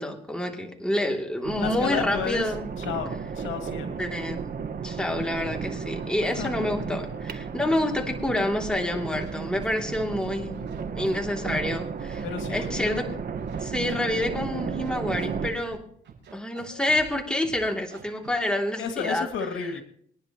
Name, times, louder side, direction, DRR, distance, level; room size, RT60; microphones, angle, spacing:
voice 1, 0.0-2.6 4.0-4.4 4.8-10.6 11.0-12.2 12.5-13.1 13.6-15.8 16.3-19.3, left 1 dB, 5° left, 1 dB, 2.8 m, -28 dB
voice 2, 1.4-4.3 6.0-6.7 7.1-7.3 7.6-7.7 8.8-9.0 9.9-10.2 11.5-11.8 12.2-13.2 13.6-14.1 15.4-15.7 16.7-17.0 18.8-19.8, left 7 dB, 80° left, 5 dB, 2.3 m, -34 dB
sound 1, 1.4-15.5, right 5 dB, 50° right, 1.4 m, -34 dB
Scratching (performance technique), 8.5-8.8 9.1-10.2 10.5-11.6 12.0-13.1 13.4-14.4 14.7-15.8 16.0-16.6 16.9-17.1 17.4-18.3, right 6 dB, 65° right, 7.6 m, -46 dB
26.0 x 10.5 x 3.0 m, 0.63 s
cardioid pair, 90°, 20 cm